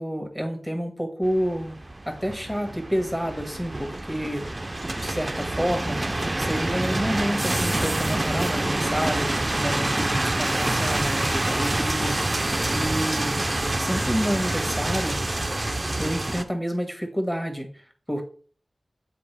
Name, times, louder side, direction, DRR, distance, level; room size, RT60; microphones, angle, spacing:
voice 1, 0.0-1.8 2.1-4.4 5.0-6.0 6.4-12.2 12.7-13.4 13.8-15.2 16.0-17.7 18.1-18.2, equal, 5° left, 3 dB, 1.7 m, -29 dB
sound 1, 1.2-16.4, right 2 dB, 35° right, 0.6 m, -27 dB
7.7 x 4.5 x 3.4 m, 0.42 s
wide cardioid pair, 50°, 0 cm